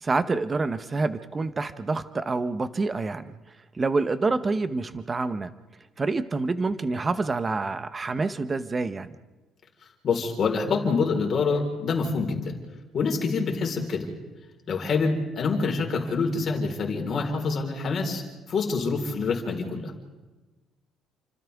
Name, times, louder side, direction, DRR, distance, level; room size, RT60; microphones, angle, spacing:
voice 1, 0.0-3.3 3.7-5.5 6.0-9.2, right 3 dB, 20° right, 12 dB, 0.8 m, -27 dB
voice 2, 10.0-12.6 12.9-14.1 14.7-18.2 18.5-19.9, left 4 dB, 40° left, 1 dB, 4.3 m, -26 dB
29.5 x 25.5 x 3.5 m, 1.2 s
cardioid pair, 150°, 0 cm